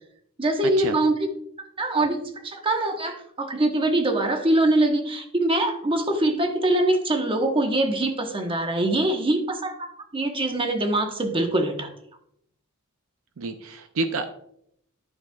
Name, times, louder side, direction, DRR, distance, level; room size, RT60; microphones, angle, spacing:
voice 1, 0.4-1.3 1.8-2.2 2.4-11.9, right 1 dB, 25° right, 4 dB, 1.0 m, -23 dB
voice 2, 13.4-14.3, right 3 dB, 65° right, 8 dB, 0.5 m, -29 dB
11.0 x 6.1 x 2.3 m, 0.73 s
head